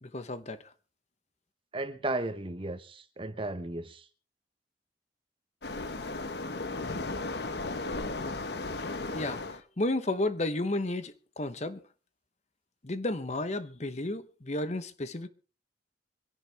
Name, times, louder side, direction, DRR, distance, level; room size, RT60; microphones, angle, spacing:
voice 1, 0.0-0.7 8.7-8.8 9.1-11.8 12.8-15.3, left 2 dB, 40° left, 1.0 m, -33 dB
voice 2, 1.7-4.0, right 2 dB, 30° right, 1.2 m, -35 dB
Waves surf, 5.6-9.6, left 2 dB, 65° left, 1.2 m, -35 dB
25.0 x 11.0 x 3.5 m
head